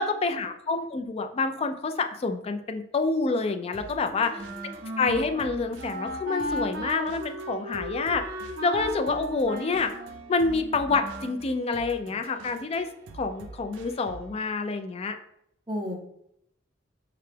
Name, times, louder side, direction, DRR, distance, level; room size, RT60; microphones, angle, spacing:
voice 1, 0.0-4.4 5.0-9.9 10.3-12.9 13.1-15.2, left 3 dB, 30° left, 7 dB, 0.3 m, -27 dB
sound 1, 3.7-14.4, right 3 dB, 90° right, 0.4 m, -47 dB
voice 2, 4.0-4.8 15.7-16.0, equal, 20° right, 1 dB, 0.6 m, -36 dB
Wind instrument woodwind instrument, 4.3-11.4, right 1 dB, 55° right, 0.8 m, -36 dB
4.9 x 2.2 x 3.2 m, 0.76 s
head